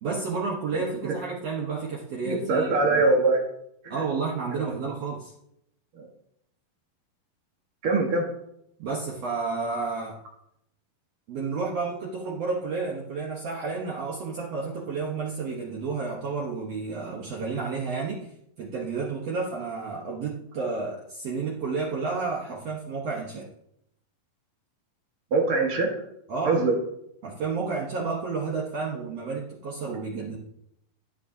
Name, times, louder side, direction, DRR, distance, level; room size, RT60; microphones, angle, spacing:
voice 1, 0.0-3.0 3.9-5.3 8.8-10.2 11.3-18.3 18.6-23.5 26.3-26.6 27.2-30.4, right 4 dB, 80° right, -3 dB, 1.4 m, -31 dB
voice 2, 0.7-1.1 2.2-3.4 3.8-4.0 4.5-4.6 5.9-6.1 7.8-8.2 25.3-25.9 26.4-26.7, right 3 dB, 60° right, 0 dB, 1.4 m, -23 dB
12.0 x 9.4 x 2.7 m, 0.76 s
omnidirectional pair, 4.6 m